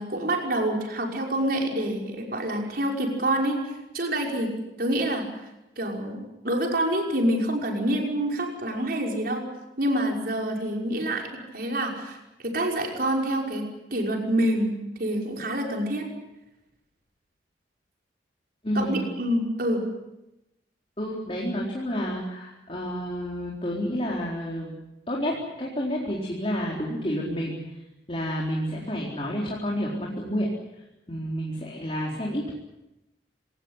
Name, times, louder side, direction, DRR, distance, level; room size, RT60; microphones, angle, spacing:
voice 1, 0.0-3.6 3.9-4.5 4.8-5.2 5.8-9.4 9.8-13.6 13.9-16.0 18.7-19.8, right 1 dB, 55° right, 0 dB, 5.7 m, -27 dB
voice 2, 18.6-19.0 21.0-24.7 25.1-27.6 28.1-30.5 31.1-32.5, equal, 30° left, -2 dB, 4.3 m, -29 dB
27.5 x 19.5 x 8.2 m, 0.93 s
head